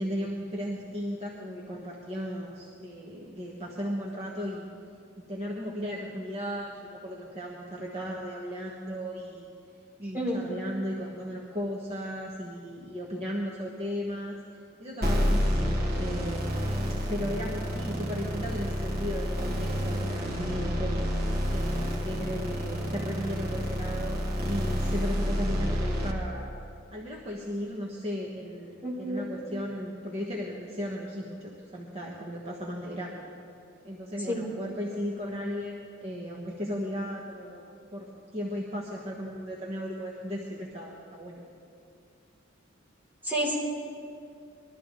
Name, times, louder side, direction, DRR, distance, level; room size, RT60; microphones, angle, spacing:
voice 1, 0.0-4.7 5.2-9.5 10.0-14.4 14.8-21.0 21.5-26.5 26.9-28.7 29.0-33.2 33.8-37.6 37.9-41.4, equal, 35° right, -3 dB, 1.3 m, -36 dB
sound 1, 15.0-26.1, equal, 50° right, 1.7 m, -29 dB
voice 2, 28.8-29.2 34.3-34.5 43.2-43.6, equal, 10° right, -6 dB, 3.7 m, -29 dB
21.0 x 13.0 x 3.8 m, 2.4 s
head